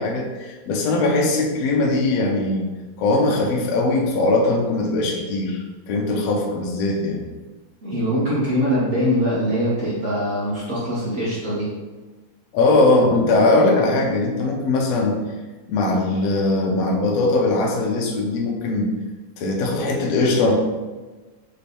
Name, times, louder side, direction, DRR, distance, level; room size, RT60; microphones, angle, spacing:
voice 1, 0.0-2.6 3.0-7.2 12.5-15.2 15.7-18.9 19.4-20.5, left 2 dB, 85° left, -1 dB, 1.4 m, -20 dB
voice 2, 7.8-11.7, equal, 50° right, -9 dB, 0.9 m, -22 dB
6.4 x 3.4 x 4.2 m, 1.3 s
omnidirectional pair, 4.2 m